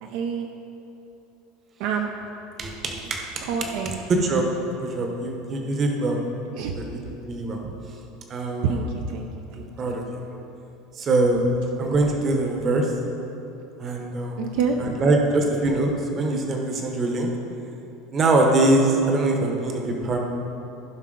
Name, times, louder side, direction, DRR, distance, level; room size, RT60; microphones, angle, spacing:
voice 1, 0.0-0.5 1.8-2.1 3.5-4.0 6.6-6.8 7.6-7.8 8.6-10.0 14.4-15.0, right 6 dB, 55° right, 3 dB, 0.6 m, -28 dB
voice 2, 2.6-3.7 4.1-4.5 4.8-6.2 6.7-7.6 8.3-8.8 9.5-10.2 11.0-11.5 11.8-12.9 13.8-14.4 14.8-17.3 18.1-20.2, right 2 dB, 25° right, 2 dB, 0.9 m, -23 dB
15.0 x 5.6 x 3.8 m, 3.0 s
cardioid pair, 175°, 0 cm